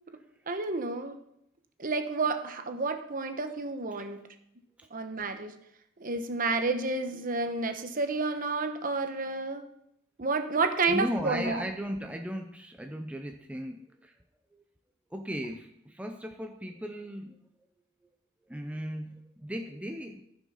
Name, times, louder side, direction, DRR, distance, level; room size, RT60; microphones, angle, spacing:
voice 1, 0.5-1.2 1.8-4.2 4.9-5.5 6.0-9.7 10.2-11.7, right 3 dB, 40° right, 7 dB, 1.0 m, -30 dB
voice 2, 10.9-14.1 15.1-17.4 18.5-20.2, equal, 5° right, 4 dB, 0.6 m, -36 dB
14.5 x 6.1 x 5.6 m, 0.77 s
head